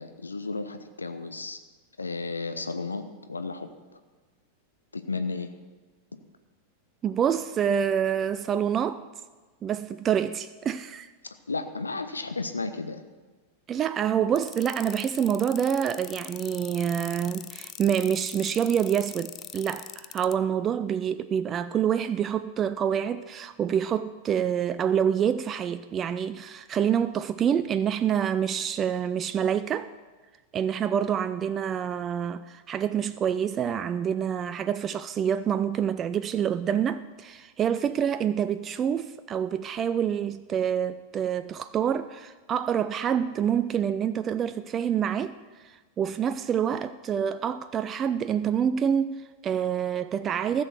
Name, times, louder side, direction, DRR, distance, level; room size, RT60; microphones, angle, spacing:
voice 1, 0.0-1.6 2.0-3.0 3.3-4.0 4.9-5.5 11.5-13.0, left 3 dB, 80° left, 0.6 m, -33 dB
voice 2, 7.0-9.0 9.6-11.1 13.7-29.9 30.5-45.3 45.6-50.6, right 8 dB, 25° right, 0.3 m, -27 dB
sound 1, 14.4-20.3, left 11 dB, 30° left, 0.5 m, -41 dB
14.5 x 6.9 x 6.1 m
figure-of-eight pair, 90°, 0 cm